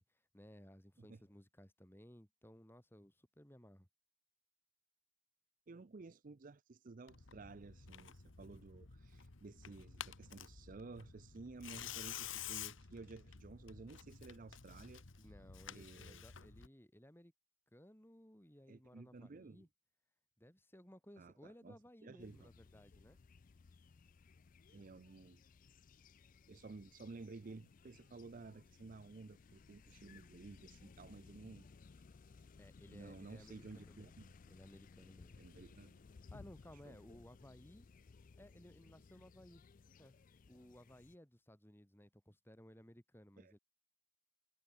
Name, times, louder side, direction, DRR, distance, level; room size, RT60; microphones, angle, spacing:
voice 1, 0.0-3.9 15.2-17.3 17.7-19.7 20.4-23.2 32.6-35.4 36.3-37.9 38.4-39.6 40.0-40.1 40.5-43.6, equal, 10° left, 3.2 m, -60 dB
voice 2, 5.7-15.0 15.7-16.2 18.7-19.7 21.2-22.5 24.7-25.4 26.5-31.7 31.9-32.4 32.9-34.3 35.4-36.0 36.8-37.0 43.4-43.5, right 3 dB, 40° right, 0.5 m, -54 dB
Tearing, 7.1-16.7, left 9 dB, 65° left, 1.4 m, -51 dB
sound 1, 22.2-41.2, left 4 dB, 40° left, 0.4 m, -61 dB
head